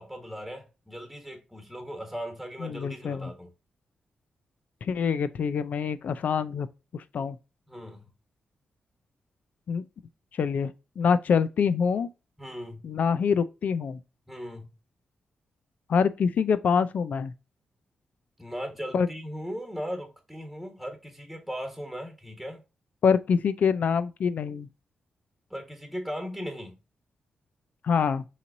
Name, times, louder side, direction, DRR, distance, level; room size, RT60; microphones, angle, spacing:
voice 1, 0.0-3.5 7.7-8.1 12.4-12.8 14.3-14.7 18.4-22.6 25.5-26.8, equal, ahead, 1.4 m, -38 dB
voice 2, 2.6-3.3 4.8-6.7 6.9-7.4 9.7-9.8 10.3-12.1 12.8-14.0 15.9-17.3 18.9-19.1 23.0-24.7 27.8-28.2, left 6 dB, 70° left, 0.5 m, -25 dB
5.6 x 3.1 x 2.6 m
cardioid pair, 65°, 3 cm